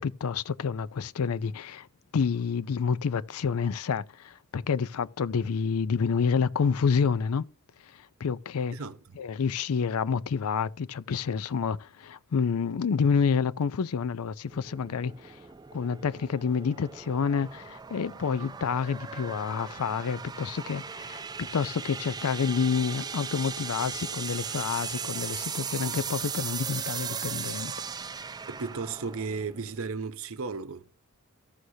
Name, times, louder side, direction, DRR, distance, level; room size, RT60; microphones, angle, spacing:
voice 1, 0.0-1.9 2.1-7.5 7.9-8.8 9.2-15.4 15.7-27.7, left 6 dB, 80° left, 0.4 m, -28 dB
voice 2, 8.7-9.2 28.5-30.8, right 4 dB, 65° right, 0.7 m, -35 dB
sound 1, 14.5-29.9, right 6 dB, 20° right, 0.3 m, -38 dB
14.5 x 6.3 x 2.7 m
head